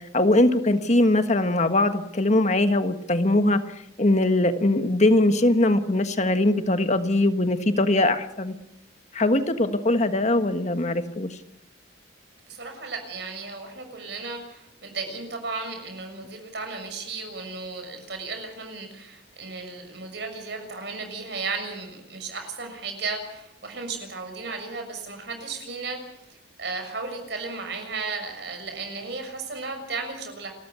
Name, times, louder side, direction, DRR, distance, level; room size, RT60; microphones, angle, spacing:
voice 1, 0.0-3.6 4.0-8.5 9.1-11.4, left 1 dB, 40° left, 9 dB, 1.5 m, -21 dB
voice 2, 12.5-26.0 26.6-30.5, right 4 dB, 65° right, 6 dB, 6.6 m, -34 dB
30.0 x 14.0 x 8.2 m, 0.80 s
head